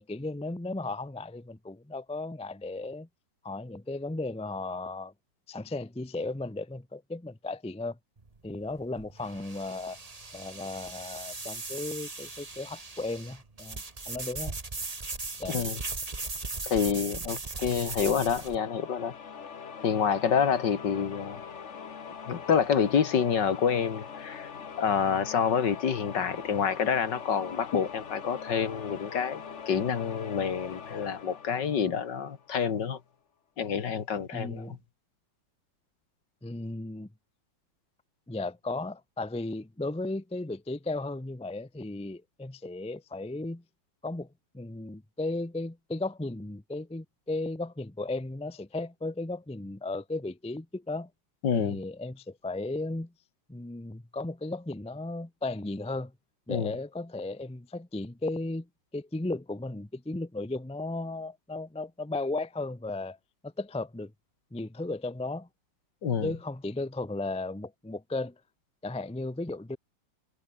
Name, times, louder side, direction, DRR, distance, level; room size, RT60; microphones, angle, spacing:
voice 1, 0.0-3.1 3.4-5.1 5.5-8.0 8.4-10.0 10.3-14.6 15.4-15.6 34.3-34.8 36.4-37.1 38.3-43.6 44.0-44.3 44.5-51.1 51.5-53.1 53.5-56.1 56.5-58.7 58.9-63.2 63.4-64.1 64.5-65.5 66.2-68.3 68.8-69.8, left 2 dB, 5° left, 0.5 m, -35 dB
sound 1, 8.2-18.6, right 3 dB, 20° right, 1.6 m, -38 dB
voice 2, 15.5-15.8 16.6-19.1 19.8-21.4 22.3-24.5 24.8-33.0 33.6-34.8 51.4-51.8 56.5-56.8 66.0-66.3, left 7 dB, 65° left, 2.3 m, -28 dB
sound 2, 18.1-32.7, left 6 dB, 40° left, 1.4 m, -43 dB
omnidirectional pair, 2.1 m